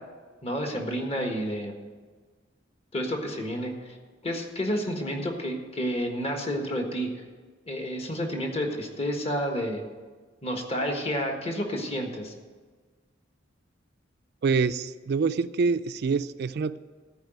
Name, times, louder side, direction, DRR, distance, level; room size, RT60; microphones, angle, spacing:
voice 1, 0.4-1.7 2.9-4.0 4.2-7.2 7.7-9.8 10.4-12.3, equal, 35° left, 3 dB, 1.4 m, -30 dB
voice 2, 14.4-16.8, right 4 dB, 55° right, 12 dB, 0.4 m, -26 dB
14.0 x 4.8 x 9.1 m, 1.4 s
head